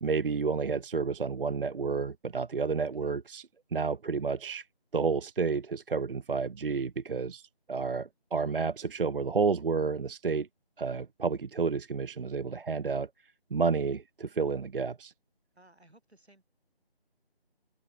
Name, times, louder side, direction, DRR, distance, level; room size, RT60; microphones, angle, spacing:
voice 1, 0.0-3.5 3.7-4.7 4.9-10.5 10.8-13.1 13.5-15.1, right 5 dB, 60° right, 0.5 m, -30 dB
voice 2, 2.8-3.1 15.5-16.4, right 1 dB, 85° right, 6.0 m, -60 dB
figure-of-eight pair, 170°, 31 cm